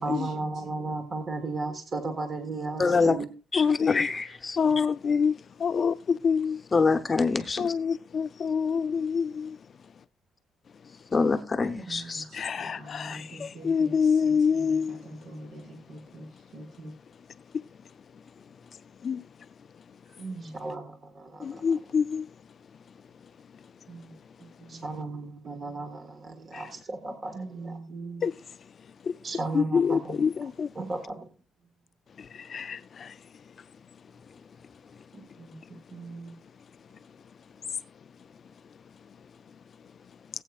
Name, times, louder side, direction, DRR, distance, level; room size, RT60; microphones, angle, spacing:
voice 1, 0.0-3.3 4.7-4.8 20.4-21.8 24.7-27.8 29.2-30.5 30.7-31.2, right 3 dB, 30° right, 1.6 m, -35 dB
voice 2, 2.8-3.1 3.5-4.9 6.7-7.7 11.1-12.2, left 4 dB, 20° left, 0.8 m, -25 dB
voice 3, 3.6-4.1 4.6-5.3 5.6-6.6 7.6-9.6 12.3-15.0 19.0-19.2 21.4-22.3 28.2-28.3 29.1-29.2 29.5-30.7 32.5-33.1, left 6 dB, 40° left, 0.4 m, -26 dB
voice 4, 11.8-16.2 16.5-16.9 20.2-20.5 23.9-24.1 24.7-24.8 27.3-28.2 30.8-30.9 35.1-35.6 35.9-36.3, right 2 dB, 70° right, 5.3 m, -43 dB
18.5 x 8.4 x 2.4 m
cardioid pair, 155°, 0 cm